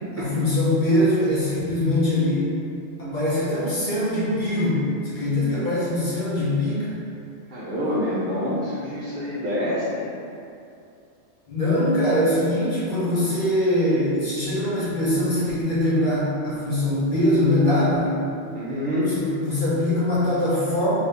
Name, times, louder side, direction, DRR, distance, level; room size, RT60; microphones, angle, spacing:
voice 1, 0.2-2.5 3.0-7.0 11.5-18.2 19.1-20.9, left 1 dB, 45° left, -9 dB, 0.8 m, -22 dB
voice 2, 7.5-10.1 18.5-19.2, left 1 dB, 65° right, -8 dB, 0.5 m, -26 dB
3.1 x 2.6 x 3.3 m, 2.5 s
omnidirectional pair, 1.4 m